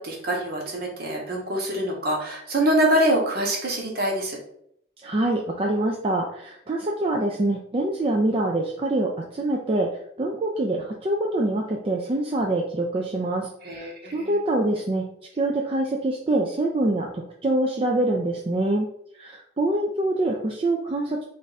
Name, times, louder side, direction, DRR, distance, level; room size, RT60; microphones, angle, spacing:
voice 1, 0.0-4.4 13.6-14.4, right 1 dB, 55° right, -1 dB, 1.1 m, -25 dB
voice 2, 5.0-9.9 10.2-15.0 15.3-18.9 19.1-21.2, right 1 dB, 30° right, 0 dB, 0.4 m, -25 dB
3.4 x 2.6 x 4.0 m, 0.70 s
head